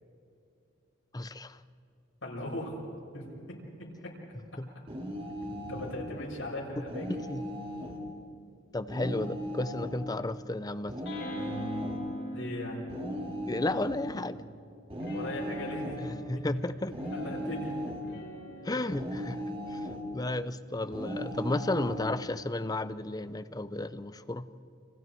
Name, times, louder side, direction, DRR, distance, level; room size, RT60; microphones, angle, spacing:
voice 1, 1.1-1.6 4.6-4.7 7.1-7.4 8.7-10.9 13.5-14.4 16.3-16.9 18.6-19.4 19.7-19.8 20.1-24.5, left 2 dB, 20° left, 12 dB, 0.6 m, -33 dB
voice 2, 2.2-2.8 3.1-3.3 3.8-4.1 5.7-7.1 12.3-12.9 15.1-16.0 16.3-16.4 16.9-17.7, left 1 dB, 80° left, -3 dB, 6.5 m, -38 dB
sound 1, 4.9-6.0 6.9-8.0 8.9-10.0 10.9-12.0 12.9-14.0 14.9-16.0 16.9-18.0 18.9-20.0 20.9-22.0, equal, 30° right, 3.1 m, -38 dB
sound 2, 11.1-14.4 15.0-21.7, equal, 60° left, 6.0 m, -43 dB
30.0 x 28.0 x 4.6 m, 2.4 s
head